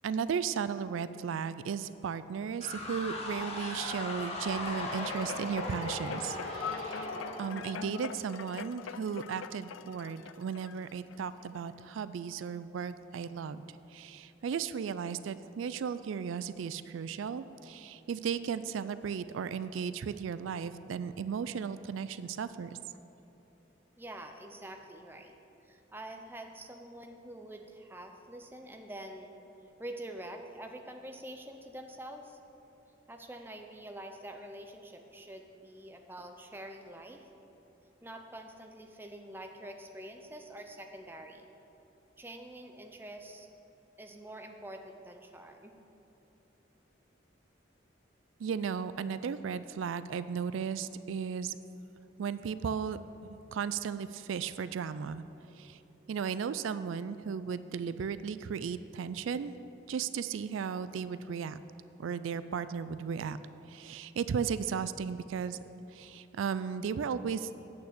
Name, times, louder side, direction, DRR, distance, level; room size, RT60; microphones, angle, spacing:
voice 1, 0.0-7.1 7.4-22.8 48.4-51.6 52.2-55.2 55.5-55.8 56.1-59.5 59.9-61.6 62.0-63.4 63.7-65.6 65.9-67.5, right 6 dB, 85° right, 14 dB, 0.3 m, -35 dB
sound 1, 2.6-8.4, left 2 dB, 30° left, 1.1 m, -38 dB
sound 2, 4.9-11.4 12.0-12.1, left 7 dB, 85° left, 0.4 m, -43 dB
voice 2, 24.0-25.4 25.6-29.3 29.8-32.4 33.1-37.3 38.0-41.5 42.2-43.5 44.0-45.7, right 1 dB, 10° right, 4 dB, 0.6 m, -46 dB
8.6 x 6.8 x 8.1 m, 2.9 s
head